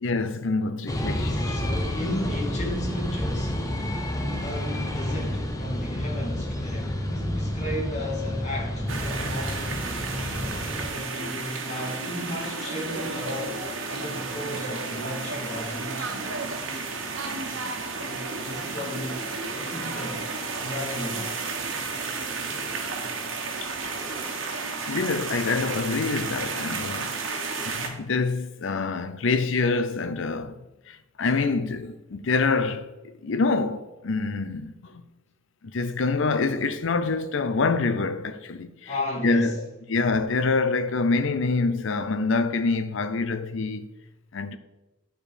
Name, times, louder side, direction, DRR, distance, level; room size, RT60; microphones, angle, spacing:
voice 1, 0.0-1.6 23.6-23.7 24.9-27.2 27.6-30.5 30.9-32.9 33.2-35.0 35.7-38.9 39.2-43.9 44.3-44.6, left 3 dB, 70° left, 0.6 m, -26 dB
sound 1, 0.9-10.9, left 1 dB, 20° left, 1.0 m, -29 dB
voice 2, 1.0-3.6 4.4-9.8 10.9-16.3 18.0-20.3 20.6-21.3 38.9-39.6, left 1 dB, 35° left, 2.4 m, -34 dB
sound 2, 8.9-27.9, right 4 dB, 75° right, 1.3 m, -32 dB
11.5 x 4.5 x 5.0 m
head